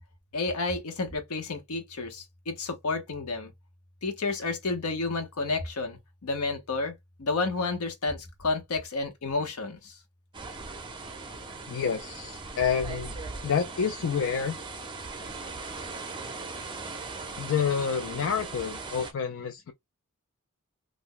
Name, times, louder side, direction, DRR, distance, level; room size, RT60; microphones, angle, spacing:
voice 1, 0.3-3.5 4.0-6.9 7.2-10.0, left 3 dB, 80° left, 0.9 m, -31 dB
sound 1, 10.3-19.1, right 3 dB, 20° right, 0.5 m, -39 dB
voice 2, 11.7-13.1 13.4-14.5 17.4-19.7, left 7 dB, 65° left, 0.4 m, -28 dB
2.5 x 2.1 x 3.7 m
head